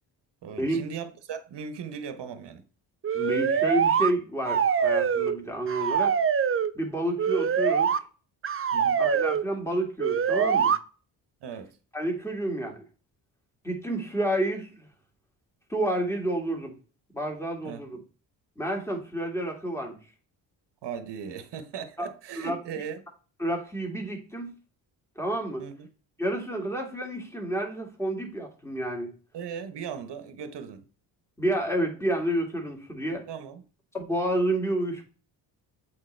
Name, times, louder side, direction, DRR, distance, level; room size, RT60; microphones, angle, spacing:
voice 1, 0.4-2.6 8.7-9.0 11.4-11.8 17.6-17.8 20.8-23.0 25.6-25.9 29.3-30.9 33.3-33.6, right 7 dB, 55° right, 1.1 m, -38 dB
sound 1, 3.0-4.1 4.4-5.4 5.7-6.7 7.2-8.0 8.4-9.4 10.0-10.8, right 7 dB, 30° right, 0.5 m, -24 dB
voice 2, 3.1-6.2 6.7-7.9 9.0-10.7 11.9-12.8 13.6-14.9 15.7-16.7 17.1-18.0 18.6-20.0 22.0-22.1 22.4-22.6 23.4-24.5 25.2-25.6 26.2-29.1 31.4-33.2 33.9-35.0, right 1 dB, 5° left, 2.3 m, -29 dB
7.6 x 4.1 x 3.3 m
supercardioid pair, 55°, 50 cm